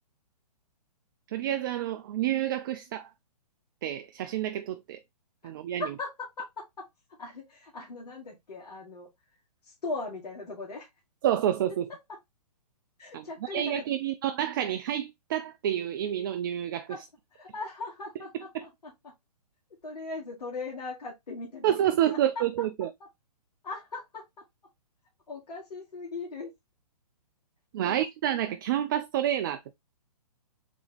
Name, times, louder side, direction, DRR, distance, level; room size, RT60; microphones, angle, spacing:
voice 1, 1.3-3.1 3.8-5.0 5.4-5.9 11.2-11.9 13.1-13.2 13.5-16.9 21.6-22.9 27.7-29.7, right 11 dB, 30° right, 0.3 m, -28 dB
voice 2, 5.8-6.9 7.2-9.1 9.6-10.9 12.1-12.2 13.0-13.8 16.9-17.0 17.3-19.1 19.8-22.7 23.6-24.4 25.3-26.5 27.8-28.0, left 3 dB, 75° left, 2.0 m, -39 dB
4.1 x 3.3 x 3.8 m
hypercardioid pair, 140°, 21 cm